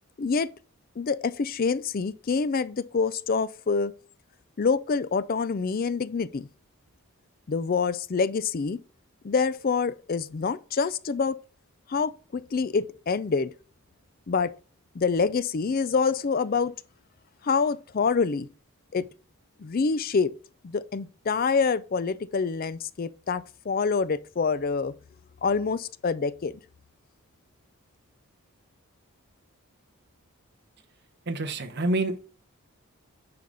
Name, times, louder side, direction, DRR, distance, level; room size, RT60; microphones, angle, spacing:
voice 1, 0.2-0.5 1.0-3.9 4.6-6.5 7.5-8.8 9.2-11.4 11.9-13.5 14.3-14.5 14.9-16.7 17.4-18.5 18.9-19.0 19.6-20.3 20.6-24.9 25.4-26.6, left 5 dB, 40° left, 0.4 m, -26 dB
voice 2, 31.3-32.2, right 2 dB, 50° right, 1.0 m, -27 dB
9.5 x 5.1 x 3.9 m
head